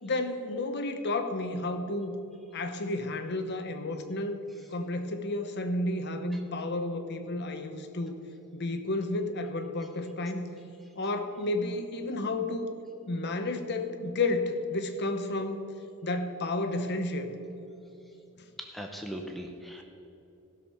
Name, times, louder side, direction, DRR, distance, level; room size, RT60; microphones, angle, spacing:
voice 1, 0.0-2.2 2.5-4.4 4.7-8.2 8.5-10.5 11.0-12.7 13.1-15.6 16.0-17.3, left 2 dB, 50° left, 7 dB, 0.9 m, -31 dB
voice 2, 18.6-19.8, equal, ahead, 2 dB, 0.7 m, -39 dB
15.5 x 6.5 x 5.6 m, 2.9 s
head